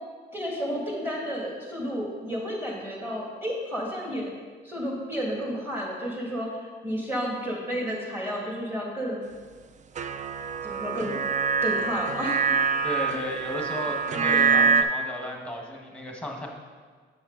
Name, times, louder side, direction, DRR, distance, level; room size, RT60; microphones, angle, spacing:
voice 1, 0.3-4.3 4.6-9.2 10.6-11.2 11.6-12.6, equal, 10° right, -3 dB, 2.1 m, -31 dB
sound 1, 10.0-14.8, right 6 dB, 40° right, 0.4 m, -25 dB
voice 2, 12.8-16.5, equal, 5° left, 0 dB, 1.3 m, -34 dB
7.4 x 6.2 x 3.8 m, 1.5 s
cardioid pair, 90°, 20 cm